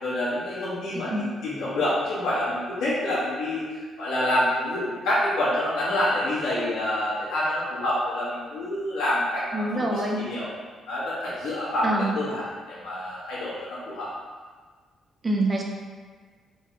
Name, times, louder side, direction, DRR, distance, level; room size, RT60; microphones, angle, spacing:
voice 1, 0.0-10.5 10.9-14.1, left 1 dB, 90° left, -9 dB, 1.4 m, -27 dB
voice 2, 9.5-10.2 11.8-12.2 15.2-15.6, right 1 dB, 30° right, 0 dB, 0.5 m, -25 dB
4.3 x 2.2 x 3.0 m, 1.5 s
cardioid pair, 90°, 0 cm